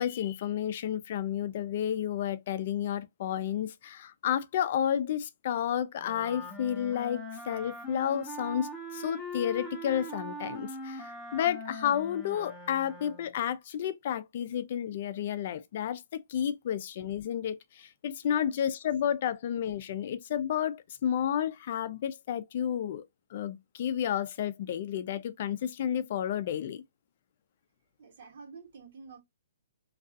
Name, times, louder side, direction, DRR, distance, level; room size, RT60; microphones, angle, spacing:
voice 1, 0.0-23.0 23.3-26.8, left 9 dB, 50° left, 0.3 m, -31 dB
sound 1, 6.0-13.3, equal, ahead, 0.6 m, -41 dB
voice 2, 28.0-29.2, right 5 dB, 60° right, 1.1 m, -49 dB
2.3 x 2.3 x 2.5 m
hypercardioid pair, 145°, 0 cm